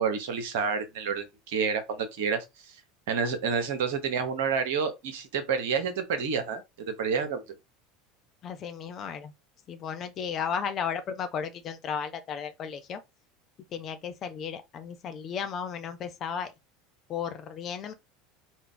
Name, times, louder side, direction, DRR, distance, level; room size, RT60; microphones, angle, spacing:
voice 1, 0.0-2.4 3.1-7.4, right 6 dB, 60° right, 0.8 m, -29 dB
voice 2, 8.4-9.3 9.7-13.0 13.7-16.5 17.1-17.9, left 7 dB, 40° left, 0.7 m, -34 dB
4.4 x 2.3 x 3.8 m
figure-of-eight pair, 75°, 0 cm